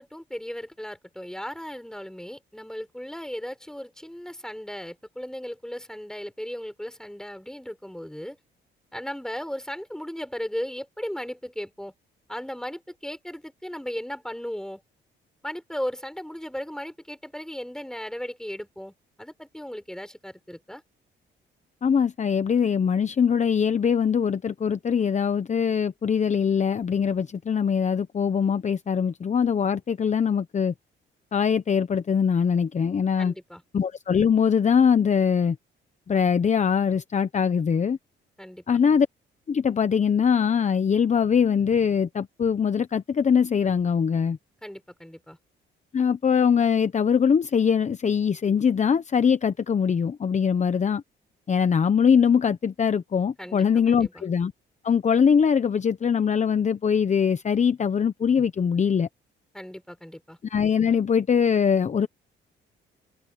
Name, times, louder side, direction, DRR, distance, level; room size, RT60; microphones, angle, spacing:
voice 1, 0.0-8.4 8.9-11.9 12.3-14.8 15.4-18.9 19.2-20.8 33.2-33.6 38.4-38.8 44.6-45.4 53.4-54.3 59.5-60.4, equal, 5° left, 7.1 m, -36 dB
voice 2, 21.8-30.7 31.3-33.3 33.7-35.6 36.1-38.0 38.7-39.1 39.5-44.4 45.9-51.0 51.5-54.5 54.8-59.1 60.5-62.1, left 7 dB, 35° left, 0.9 m, -22 dB
open air
cardioid pair, 90°, 20 cm